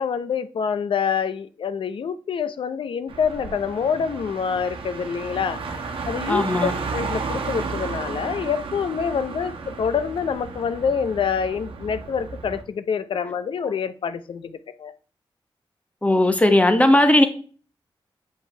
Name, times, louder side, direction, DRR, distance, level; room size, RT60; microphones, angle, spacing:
voice 1, 0.0-14.9, left 6 dB, 75° left, 0.6 m, -26 dB
Car, 3.1-12.6, right 4 dB, 85° right, 1.1 m, -33 dB
voice 2, 6.3-6.7 16.0-17.3, left 1 dB, 15° left, 1.0 m, -17 dB
8.0 x 5.3 x 3.3 m
wide cardioid pair, 100°, 9 cm